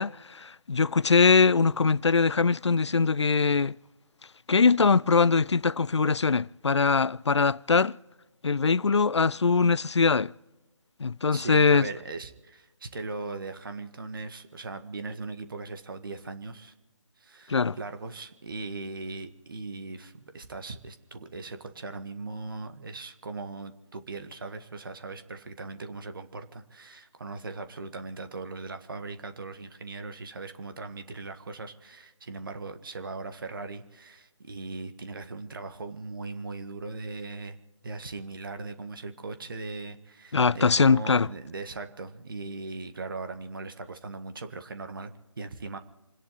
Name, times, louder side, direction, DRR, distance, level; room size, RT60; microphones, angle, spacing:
voice 1, 0.0-3.7 4.5-7.9 8.4-10.3 11.0-11.9 17.5-17.8 40.3-41.3, left 4 dB, 65° left, 0.5 m, -22 dB
voice 2, 11.3-16.7 17.2-37.6 37.8-45.8, right 3 dB, 45° right, 1.7 m, -39 dB
29.0 x 10.5 x 4.1 m
figure-of-eight pair, 155°, 16 cm